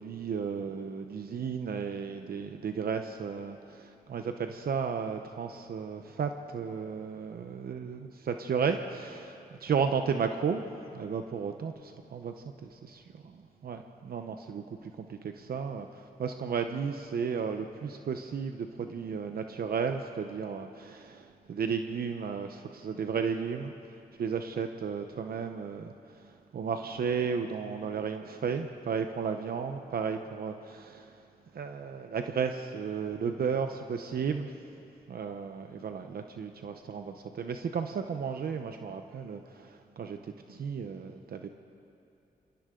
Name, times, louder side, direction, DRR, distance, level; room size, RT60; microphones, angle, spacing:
voice 1, 0.0-10.7 10.9-23.7 24.2-31.2 31.5-34.5 35.1-41.5, right 6 dB, 70° right, 6 dB, 0.9 m, -34 dB
28.5 x 25.5 x 3.8 m, 2.6 s
cardioid pair, 100°, 16 cm